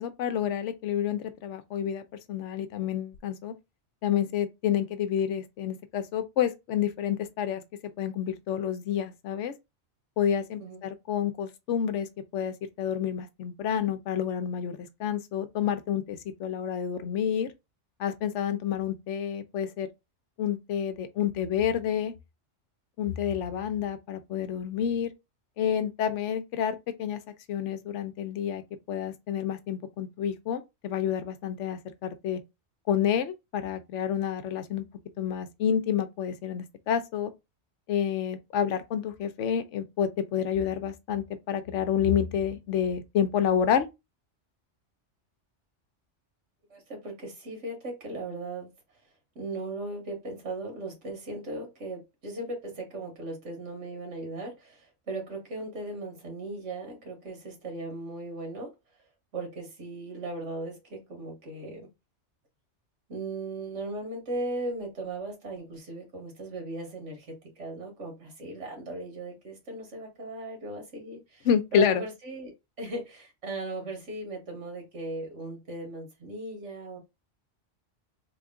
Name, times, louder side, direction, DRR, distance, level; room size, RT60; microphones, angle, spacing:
voice 1, 0.0-3.5 4.0-9.5 10.2-12.1 12.3-17.5 18.0-19.9 20.4-22.1 23.0-25.1 25.6-27.2 27.5-28.6 28.9-32.4 32.9-34.8 35.2-37.3 37.9-43.9 71.5-72.0, left 9 dB, 80° left, 0.9 m, -29 dB
voice 2, 46.7-48.7 49.4-58.7 59.3-61.9 63.1-77.0, right 2 dB, 80° right, 1.7 m, -38 dB
3.5 x 2.3 x 3.6 m
omnidirectional pair, 1.2 m